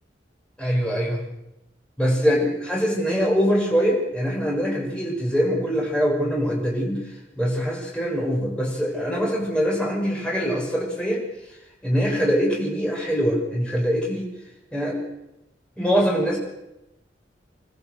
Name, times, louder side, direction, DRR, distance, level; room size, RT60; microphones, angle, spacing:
voice 1, 0.6-1.2 2.0-2.4 2.7-7.0 7.4-11.2 11.8-14.3 14.7-15.0 15.8-16.4, equal, 5° left, -3 dB, 6.6 m, -23 dB
28.0 x 13.5 x 6.9 m, 0.92 s
head